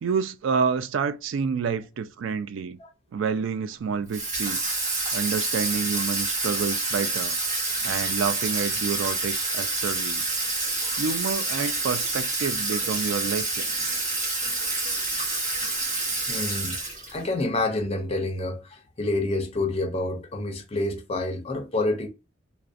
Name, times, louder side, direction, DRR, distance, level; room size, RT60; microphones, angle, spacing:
voice 1, 0.0-2.8 3.1-4.7 5.1-7.4 7.8-10.4 11.0-14.0, right 6 dB, 65° right, 0.3 m, -28 dB
Water tap faucet / Sink (filling or washing), 4.1-17.3, right 3 dB, 35° right, 1.0 m, -28 dB
voice 2, 16.3-16.8 17.1-22.1, left 2 dB, 30° left, 0.4 m, -28 dB
2.4 x 2.1 x 2.4 m
head